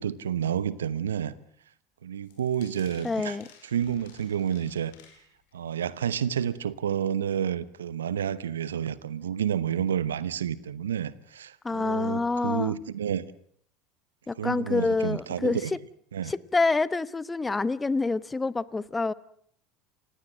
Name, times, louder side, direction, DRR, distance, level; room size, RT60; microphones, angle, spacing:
voice 1, 0.0-1.3 2.0-3.4 3.7-4.9 5.5-13.3 14.4-15.7 16.1-16.3, right 9 dB, 80° right, 18 dB, 0.9 m, -30 dB
sound 1, 2.2-5.6 6.0-6.3 6.7-6.8 7.1-7.2, left 8 dB, 70° left, 4.8 m, -55 dB
voice 2, 3.0-3.5 11.6-12.7 14.3-15.8 16.2-19.1, left 3 dB, 15° left, 20 dB, 0.9 m, -27 dB
28.0 x 17.0 x 7.6 m, 0.63 s
figure-of-eight pair, 70°, 0 cm